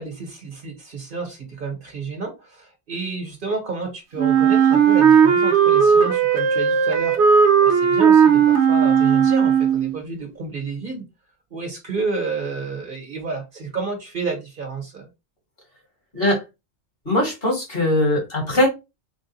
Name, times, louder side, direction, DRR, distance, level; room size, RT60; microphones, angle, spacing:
voice 1, 0.0-7.2 7.6-11.0 11.5-15.1, right 4 dB, 50° right, 1.4 m, -30 dB
Wind instrument woodwind instrument, 4.2-10.0, right 7 dB, 75° right, 1.0 m, -16 dB
voice 2, 17.1-18.7, left 1 dB, 55° left, 2.0 m, -20 dB
3.7 x 2.5 x 3.9 m
omnidirectional pair, 1.2 m